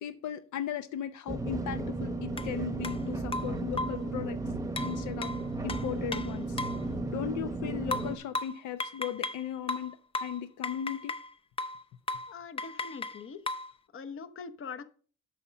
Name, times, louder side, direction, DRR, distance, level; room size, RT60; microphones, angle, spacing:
voice 1, 0.0-4.4 4.8-5.3 5.6-6.6 7.1-11.1, left 10 dB, 75° left, 11 dB, 0.6 m, -37 dB
sound 1, 1.3-8.2, right 2 dB, 10° right, 0.9 m, -34 dB
sound 2, 2.4-2.5 2.8-3.0 3.3-4.1 4.8-6.9 7.9-9.4 9.7-11.3 11.6-11.8 12.1-12.3 12.6-13.7, left 2 dB, 20° left, 0.6 m, -36 dB
voice 2, 12.3-13.4 13.9-14.8, left 5 dB, 45° left, 11 dB, 0.9 m, -42 dB
8.7 x 5.7 x 5.1 m, 0.42 s
cardioid pair, 90°, 30 cm